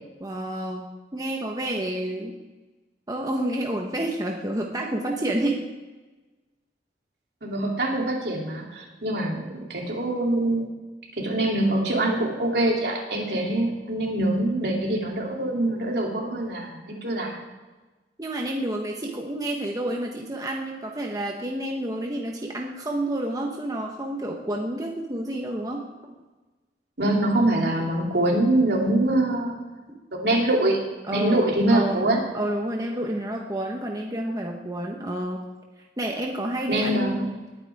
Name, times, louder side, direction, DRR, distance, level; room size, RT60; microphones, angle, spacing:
voice 1, 0.2-0.8 1.1-2.4 3.1-5.6 13.3-13.5 18.2-26.1 29.9-30.0 31.1-31.4 31.7-32.1 32.3-35.5 36.0-37.2, right 1 dB, 20° right, 0 dB, 1.2 m, -29 dB
voice 2, 7.4-10.7 11.2-17.3 27.0-29.6 30.1-30.8 31.1-32.2 36.7-37.3, right 1 dB, 65° right, -1 dB, 3.0 m, -24 dB
20.0 x 9.4 x 3.6 m, 1.2 s
head